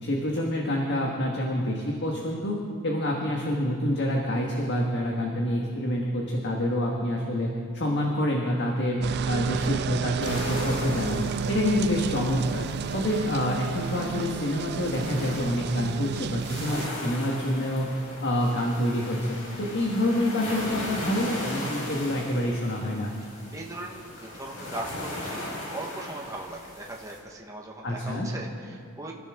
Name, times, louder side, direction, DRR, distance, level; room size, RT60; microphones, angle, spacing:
voice 1, 0.0-2.6 2.8-12.7 12.9-17.9 18.2-23.1 27.8-28.3, left 1 dB, 50° left, -1 dB, 1.7 m, -27 dB
sound 1, 9.0-16.9, right 7 dB, 45° right, 0.3 m, -32 dB
sound 2, 10.2-27.2, left 1 dB, 80° left, 4.7 m, -38 dB
voice 2, 23.5-29.1, right 1 dB, 15° right, -1 dB, 1.4 m, -39 dB
27.0 x 14.0 x 3.8 m, 2.2 s
head